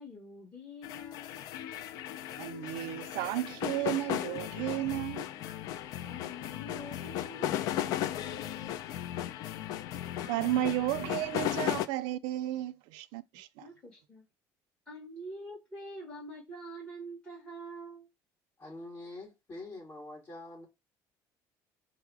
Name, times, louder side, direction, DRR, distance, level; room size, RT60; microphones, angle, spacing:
voice 1, 0.0-1.4 6.0-8.8 13.6-14.2 14.9-18.1, equal, 15° left, 1.3 m, -46 dB
sound 1, 0.8-11.9, left 12 dB, 60° left, 0.3 m, -36 dB
voice 2, 2.4-5.3 10.2-13.7, right 14 dB, 90° right, 0.3 m, -33 dB
voice 3, 18.6-20.7, left 2 dB, 30° left, 1.7 m, -45 dB
4.5 x 2.0 x 4.6 m
cardioid pair, 150°, 7 cm